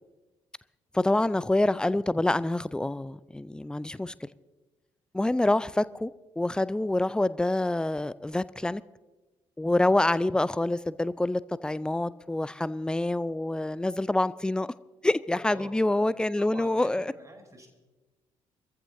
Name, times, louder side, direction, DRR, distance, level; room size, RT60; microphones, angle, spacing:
voice 1, 0.9-4.1 5.1-6.1 6.4-8.8 9.6-14.7 15.0-17.1, left 2 dB, 5° left, 0.4 m, -26 dB
voice 2, 15.4-17.7, right 1 dB, 20° right, 3.6 m, -47 dB
24.0 x 14.5 x 2.7 m
figure-of-eight pair, 45°, 16 cm